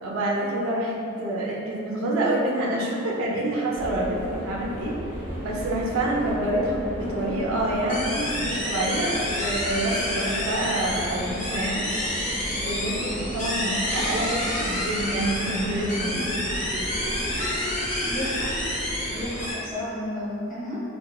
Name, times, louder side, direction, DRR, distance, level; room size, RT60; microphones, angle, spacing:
voice 1, 0.0-4.9 5.4-11.9 12.6-16.2, right 1 dB, 85° right, -2 dB, 0.4 m, -27 dB
sound 1, 3.7-19.5, equal, 85° left, 0.9 m, -35 dB
sound 2, 7.9-19.5, left 1 dB, 40° left, 0.6 m, -29 dB
voice 2, 18.0-18.5 19.1-20.8, left 1 dB, ahead, -11 dB, 0.8 m, -32 dB
2.9 x 2.1 x 2.2 m, 2.6 s
head